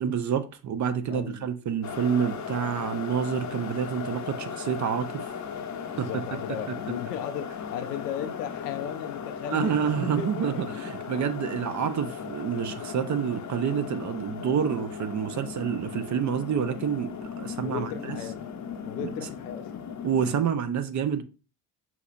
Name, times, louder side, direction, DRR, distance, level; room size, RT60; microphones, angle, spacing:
voice 1, 0.0-5.3 6.0-6.1 9.5-18.2 19.0-19.1 20.0-21.2, right 8 dB, 40° right, 0.6 m, -28 dB
voice 2, 1.1-1.5 5.9-9.8 10.0-10.8 15.6-15.7 17.6-18.5 18.8-19.8, left 10 dB, 85° left, 0.5 m, -36 dB
sound 1, 1.8-20.4, left 7 dB, 35° left, 0.7 m, -37 dB
5.8 x 2.8 x 2.5 m
figure-of-eight pair, 40°, 47 cm